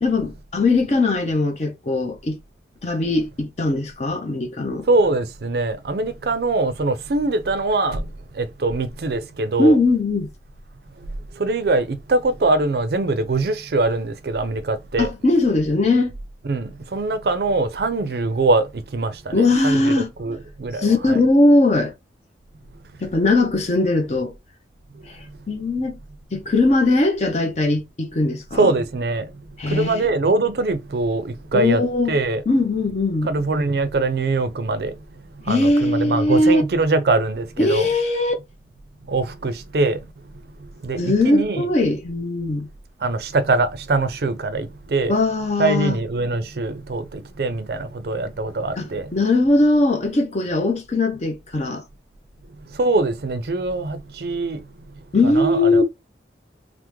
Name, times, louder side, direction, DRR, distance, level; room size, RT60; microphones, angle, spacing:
voice 1, 0.0-2.4 2.8-4.9 9.6-10.3 15.0-16.1 19.3-20.1 20.8-21.9 23.0-24.3 25.1-25.2 25.5-26.0 26.3-28.7 29.6-30.1 31.5-32.1 32.5-33.3 35.5-36.6 37.6-38.3 41.0-42.7 45.1-45.9 48.8-51.8 55.1-55.8, left 2 dB, 40° left, 0.5 m, -19 dB
voice 2, 4.9-9.8 11.0-15.1 16.4-21.2 24.9-25.4 28.5-32.4 33.2-37.9 39.0-41.7 43.0-45.1 45.6-49.2 52.5-55.8, right 2 dB, 60° right, 0.4 m, -23 dB
3.4 x 2.0 x 3.0 m
head